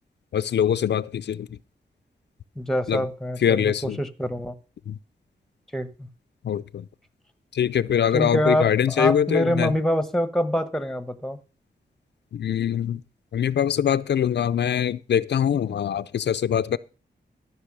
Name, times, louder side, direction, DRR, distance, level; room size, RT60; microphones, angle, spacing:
voice 1, 0.3-1.5 2.9-3.0 3.4-4.0 4.9-5.0 6.4-6.8 7.5-9.7 12.3-13.0 13.3-16.8, left 9 dB, 80° left, 0.5 m, -23 dB
voice 2, 2.6-4.5 5.7-6.1 8.1-11.4, equal, ahead, 1.0 m, -25 dB
13.5 x 6.1 x 6.1 m
wide cardioid pair, 95°, 18 cm